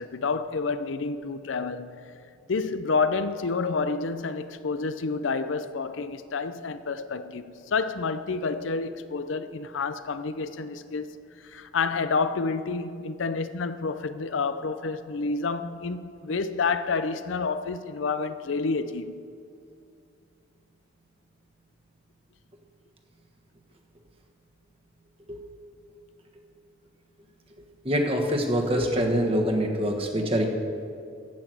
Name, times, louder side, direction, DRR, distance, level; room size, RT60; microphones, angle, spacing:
voice 1, 0.0-1.9 2.5-11.1 11.4-19.2, left 4 dB, 85° left, 0.5 m, -29 dB
voice 2, 27.8-30.5, equal, 30° right, 1.3 m, -24 dB
15.0 x 6.0 x 7.8 m
head